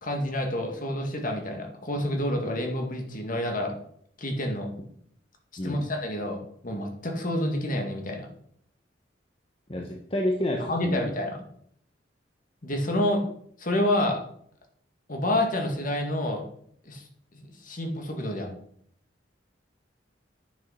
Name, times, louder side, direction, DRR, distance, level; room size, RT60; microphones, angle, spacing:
voice 1, 0.0-3.7 4.2-4.7 5.6-6.4 6.6-8.3 10.7-11.4 12.6-13.2 13.6-14.2 15.1-16.4 16.9-17.0 17.4-18.5, left 1 dB, 50° left, 3 dB, 2.0 m, -28 dB
voice 2, 9.7-11.1, left 1 dB, 30° left, 1 dB, 1.2 m, -29 dB
9.6 x 6.4 x 5.7 m, 0.66 s
head